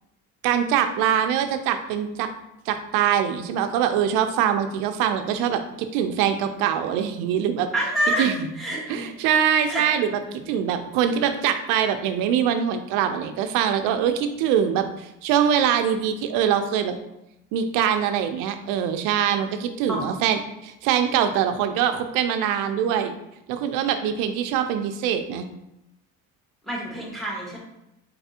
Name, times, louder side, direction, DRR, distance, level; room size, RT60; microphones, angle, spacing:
voice 1, 0.4-2.3 2.7-7.7 8.2-8.5 8.9-16.9 17.5-23.1 23.5-25.5, right 9 dB, 90° right, 8 dB, 0.5 m, -23 dB
voice 2, 7.7-8.3 8.6-9.0 9.7-9.8 10.3-10.4 19.9-20.0 26.6-27.6, equal, ahead, -3 dB, 0.9 m, -27 dB
4.0 x 3.3 x 2.8 m, 0.86 s
cardioid pair, 140°, 31 cm